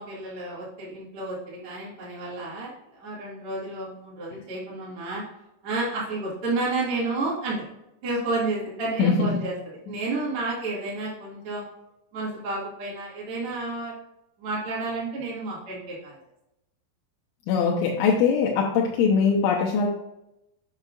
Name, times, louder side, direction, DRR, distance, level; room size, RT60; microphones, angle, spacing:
voice 1, 0.0-5.2 5.6-7.7 8.0-9.5 9.9-11.6 12.1-13.9 14.4-16.2, right 2 dB, 45° right, -7 dB, 1.8 m, -31 dB
voice 2, 9.0-9.4 17.5-19.9, left 5 dB, 80° left, -2 dB, 3.0 m, -22 dB
8.1 x 6.7 x 2.4 m, 0.85 s
omnidirectional pair, 5.8 m